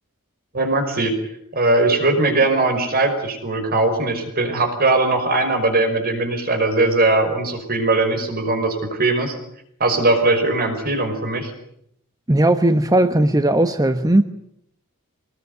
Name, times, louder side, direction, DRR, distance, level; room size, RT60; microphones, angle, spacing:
voice 1, 0.5-1.1 1.5-9.4 9.8-11.5, right 2 dB, 45° right, 5.3 m, -20 dB
voice 2, 12.3-14.2, right 1 dB, 15° right, 1.1 m, -17 dB
25.0 x 20.5 x 9.6 m
head